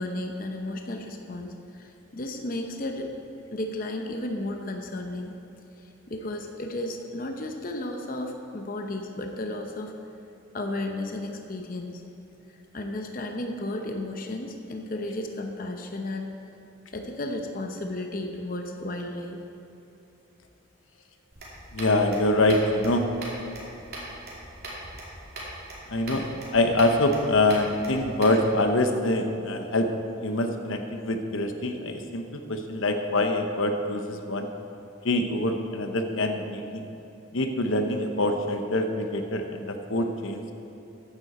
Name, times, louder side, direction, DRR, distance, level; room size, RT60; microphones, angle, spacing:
voice 1, 0.0-3.1 3.5-5.3 5.8-9.9 10.5-12.0 12.5-16.3 16.9-19.4, left 1 dB, 45° left, 3 dB, 0.8 m, -33 dB
sound 1, 21.3-28.4, right 1 dB, 50° right, 2.9 m, -41 dB
voice 2, 21.7-23.1 25.9-26.3 26.5-29.9 30.2-34.5 35.0-36.9 37.3-40.5, left 2 dB, 80° left, 6 dB, 0.9 m, -25 dB
14.5 x 9.8 x 4.3 m, 2.9 s
head